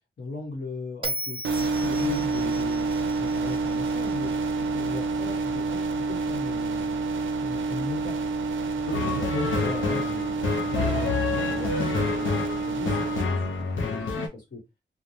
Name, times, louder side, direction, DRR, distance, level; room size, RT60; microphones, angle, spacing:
voice 1, 0.2-2.8 3.2-4.3 4.6-6.9 7.4-8.2 8.7-14.6, left 2 dB, 50° left, 1.1 m, -37 dB
Bell, 1.0-4.3, right 1 dB, 30° right, 0.5 m, -37 dB
sound 1, 1.4-13.2, right 3 dB, 85° right, 0.5 m, -28 dB
sound 2, 8.9-14.3, left 4 dB, 75° left, 0.6 m, -28 dB
3.3 x 2.1 x 2.6 m
wide cardioid pair, 155°, 20 cm